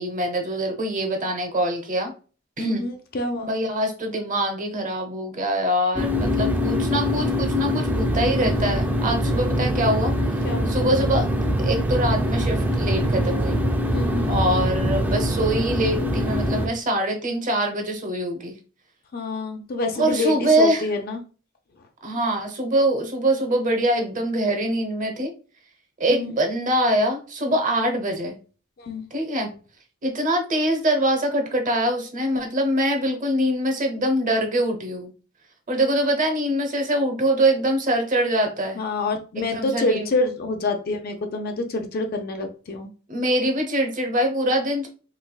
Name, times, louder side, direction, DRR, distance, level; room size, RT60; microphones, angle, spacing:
voice 1, 0.0-2.1 2.6-2.8 3.5-10.1 10.7-11.3 11.6-13.6 14.3-18.5 19.9-20.9 22.0-25.3 26.0-28.4 29.1-29.5 30.0-35.1 35.7-38.8 39.4-40.1 43.1-44.9, right 1 dB, 40° right, 3 dB, 0.8 m, -23 dB
voice 2, 2.6-3.5 10.4-10.8 13.9-14.3 19.1-21.2 26.1-26.3 28.8-29.0 38.8-42.9, left 2 dB, 45° left, 5 dB, 0.5 m, -27 dB
sound 1, 6.0-16.7, equal, 10° right, 0.4 m, -23 dB
3.3 x 3.2 x 2.3 m, 0.37 s
head